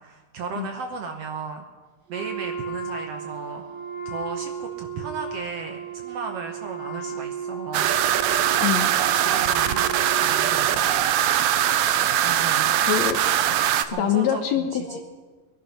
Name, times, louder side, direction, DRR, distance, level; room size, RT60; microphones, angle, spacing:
voice 1, 0.0-1.6 2.1-3.6 4.0-7.9 9.2-9.9 10.2-11.2 12.2-12.8 13.9-15.0, right 4 dB, 65° right, 5 dB, 1.7 m, -35 dB
Wind instrument woodwind instrument, 2.1-10.9, right 6 dB, 35° right, 0.8 m, -35 dB
sound 1, 7.7-13.8, right 11 dB, 85° right, 1.4 m, -21 dB
voice 2, 8.6-8.9 12.8-13.2 14.0-15.0, left 10 dB, 70° left, 6 dB, 1.9 m, -24 dB
22.0 x 11.5 x 5.7 m, 1.4 s
omnidirectional pair, 3.8 m